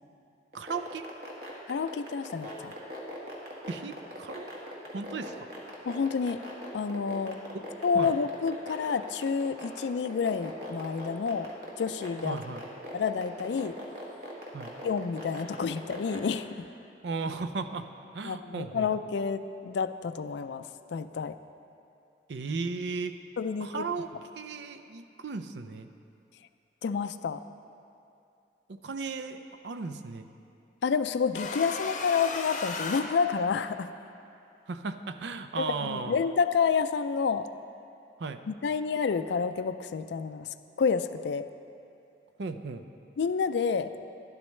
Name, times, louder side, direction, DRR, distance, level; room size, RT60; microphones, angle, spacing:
sound 1, 0.5-16.2, left 1 dB, 55° right, 1.6 m, -40 dB
voice 1, 0.5-1.0 3.7-4.5 4.9-5.5 7.5-7.6 7.9-8.1 12.2-12.6 14.5-14.7 17.0-17.9 18.1-18.9 22.3-23.2 23.6-24.1 24.3-25.9 28.7-30.3 34.7-36.2 38.2-38.4 42.4-42.9, right 4 dB, 75° right, 9 dB, 0.5 m, -35 dB
voice 2, 1.7-2.7 5.8-6.4 6.7-7.4 7.8-11.5 11.8-12.4 12.9-13.8 14.8-16.5 18.2-21.4 23.4-23.9 26.8-27.4 30.8-33.9 35.6-37.5 38.5-41.4 43.2-43.9, left 5 dB, 75° left, 11 dB, 0.4 m, -29 dB
sound 2, 31.3-33.9, left 3 dB, 45° left, 0.7 m, -36 dB
12.0 x 11.5 x 3.2 m, 2.6 s
head